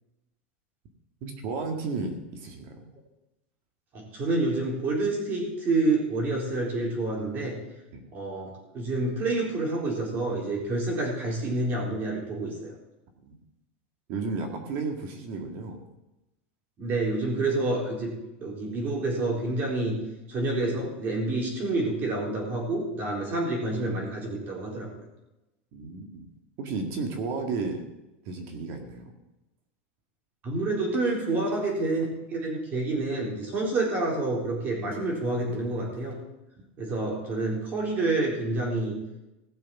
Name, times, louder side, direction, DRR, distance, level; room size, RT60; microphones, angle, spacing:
voice 1, 1.2-2.9 7.9-8.0 13.2-13.4 14.1-15.8 25.7-26.3 26.6-27.8 28.3-29.1, right 4 dB, 50° right, 4 dB, 1.9 m, -33 dB
voice 2, 3.9-7.6 8.1-12.8 16.8-18.1 18.4-20.0 20.3-24.9 30.4-32.0 32.3-36.1 36.8-38.9, right 2 dB, 30° right, -1 dB, 4.0 m, -28 dB
17.0 x 6.8 x 6.0 m, 0.97 s
supercardioid pair, 155°, 6 cm